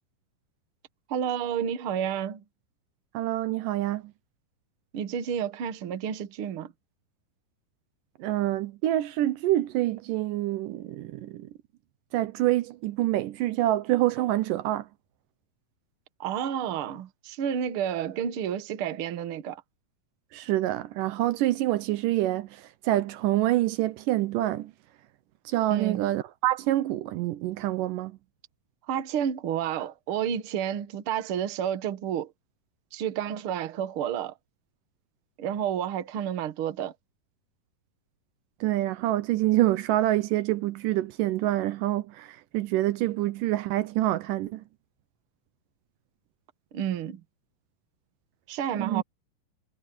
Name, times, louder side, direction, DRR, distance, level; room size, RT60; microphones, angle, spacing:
voice 1, 1.1-2.4 4.9-6.7 16.2-19.6 25.7-26.0 28.9-32.3 32.9-34.3 35.4-36.9 46.7-47.2 48.5-49.0, right 9 dB, 55° right, 1.7 m, -30 dB
voice 2, 3.1-4.1 8.2-11.5 12.1-14.9 20.3-24.7 25.5-28.2 38.6-44.6 48.8-49.0, right 15 dB, 80° right, 2.3 m, -26 dB
omnidirectional pair, 3.9 m